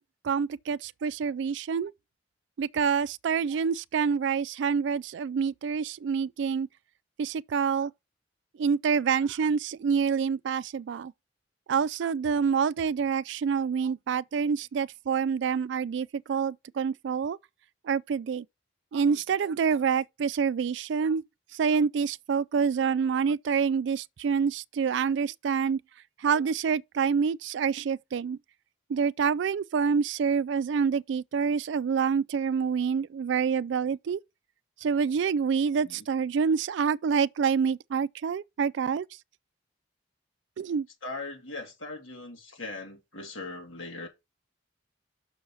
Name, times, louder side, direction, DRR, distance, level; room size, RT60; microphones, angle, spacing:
voice 1, 0.2-1.9 2.6-6.7 7.2-7.9 8.6-11.1 11.7-17.4 17.9-18.4 18.9-21.2 21.6-25.8 26.2-28.4 28.9-34.2 34.8-39.0 40.6-40.9, right 6 dB, 70° right, 0.3 m, -27 dB
voice 2, 35.7-36.1 41.0-44.1, left 2 dB, 90° left, 2.5 m, -40 dB
6.3 x 4.6 x 5.6 m
head